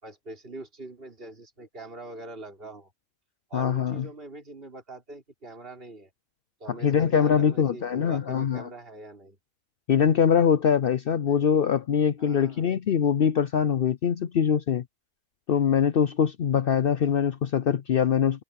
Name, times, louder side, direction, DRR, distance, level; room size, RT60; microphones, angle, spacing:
voice 1, 0.0-2.9 3.5-6.1 6.6-9.4 11.3-11.6 12.2-12.7, right 2 dB, 35° right, 5.0 m, -43 dB
voice 2, 3.5-4.1 6.8-8.7 9.9-14.8 15.5-18.4, left 7 dB, 85° left, 0.5 m, -23 dB
omnidirectional pair, 1.7 m